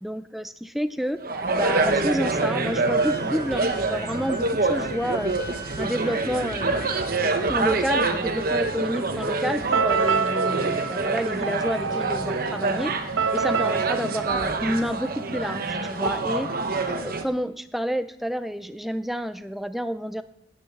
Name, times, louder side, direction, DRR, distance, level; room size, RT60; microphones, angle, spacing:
voice 1, 0.0-1.2 1.5-5.4 5.8-6.8 7.5-12.9 13.3-16.5 16.9-20.2, equal, ahead, 11 dB, 0.4 m, -29 dB
sound 1, 1.2-17.2, right 3 dB, 45° right, 1.0 m, -26 dB
Wind instrument woodwind instrument, 3.0-7.0, left 1 dB, 15° left, 2.2 m, -40 dB
sound 2, 9.7-15.5, right 5 dB, 80° right, 0.6 m, -27 dB
10.0 x 8.7 x 7.8 m, 0.90 s
head